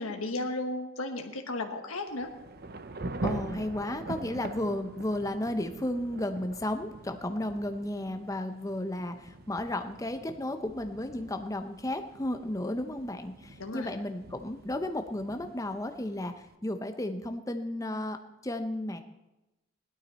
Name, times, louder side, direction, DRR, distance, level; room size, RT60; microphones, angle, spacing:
voice 1, 0.0-2.3 13.6-14.0, left 2 dB, 85° left, 4 dB, 1.4 m, -34 dB
Thunder / Rain, 2.1-16.5, right 2 dB, 45° right, 0.6 m, -43 dB
voice 2, 3.2-16.3 16.6-18.2 18.4-19.0, left 1 dB, 15° left, 7 dB, 0.7 m, -33 dB
16.5 x 12.0 x 4.2 m, 1.0 s
head